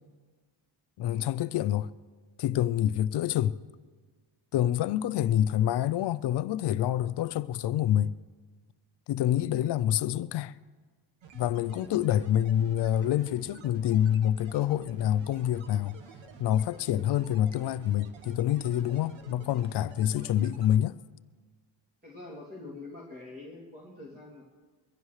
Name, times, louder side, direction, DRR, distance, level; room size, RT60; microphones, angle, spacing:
voice 1, 1.0-1.9 2.4-3.6 4.5-8.1 9.1-10.5 11.3-16.0 16.4-21.0, left 11 dB, 60° left, 0.5 m, -27 dB
sound 1, 11.2-20.8, right 5 dB, 80° right, 1.4 m, -51 dB
voice 2, 22.0-24.4, left 2 dB, 20° right, 2.6 m, -45 dB
23.5 x 16.0 x 3.2 m
cardioid pair, 140°, 46 cm